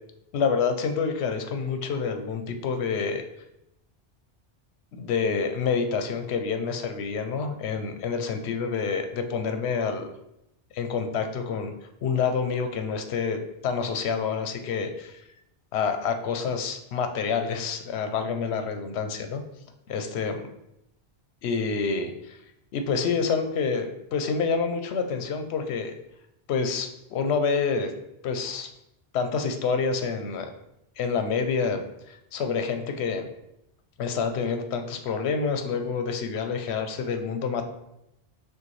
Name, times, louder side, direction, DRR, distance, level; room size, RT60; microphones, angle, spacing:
voice 1, 0.3-3.2 5.0-10.1 10.7-11.7 12.0-15.2 15.7-19.4 19.9-20.3 21.4-22.4 22.7-25.9 26.5-27.9 28.2-28.7 29.1-30.5 31.0-33.3 34.0-37.6, left 5 dB, 80° left, 6 dB, 0.8 m, -27 dB
6.3 x 2.4 x 3.1 m, 0.84 s
omnidirectional pair, 1.1 m